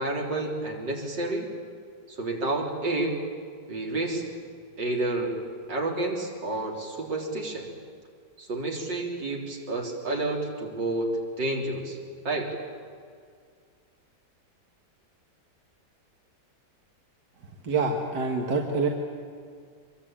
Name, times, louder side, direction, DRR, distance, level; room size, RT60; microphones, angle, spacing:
voice 1, 0.0-1.5 2.1-3.2 3.7-4.2 4.8-5.4 5.7-7.7 8.4-12.0 12.2-12.5, right 2 dB, 85° right, 0 dB, 4.4 m, -30 dB
voice 2, 17.6-18.9, right 4 dB, 65° right, 1 dB, 2.4 m, -26 dB
25.5 x 23.0 x 8.9 m, 2.1 s
omnidirectional pair, 1.9 m